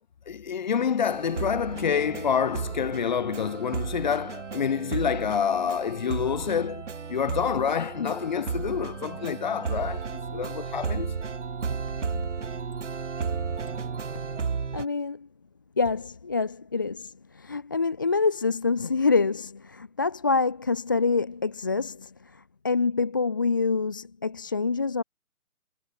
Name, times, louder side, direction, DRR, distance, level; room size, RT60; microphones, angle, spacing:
voice 1, 0.3-11.2, left 7 dB, 30° left, 2.2 m, -27 dB
sound 1, 1.1-14.9, right 5 dB, 55° right, 2.1 m, -33 dB
voice 2, 14.7-15.3 15.8-25.0, left 4 dB, 15° left, 0.9 m, -26 dB
figure-of-eight pair, 165°, 43 cm